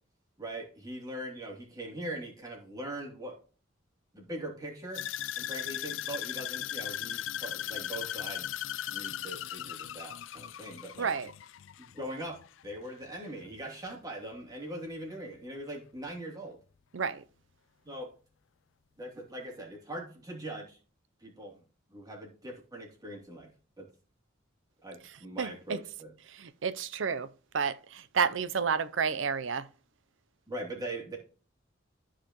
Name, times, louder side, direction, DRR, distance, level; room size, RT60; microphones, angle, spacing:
voice 1, 0.4-3.4 4.1-5.0 5.4-8.5 8.9-11.1 11.8-16.6 17.8-18.1 19.0-20.8 21.2-21.6 21.9-23.5 23.8-23.9 24.8-26.1 30.5-31.2, right 1 dB, 20° right, 2.9 m, -41 dB
sound 1, 4.9-13.2 13.5-13.9 14.3-14.4, left 11 dB, 85° left, 0.4 m, -38 dB
voice 2, 11.0-11.3 16.9-17.2 25.4-25.8 26.3-27.3 27.5-29.7, right 6 dB, 85° right, 0.6 m, -30 dB
14.0 x 4.9 x 3.0 m
head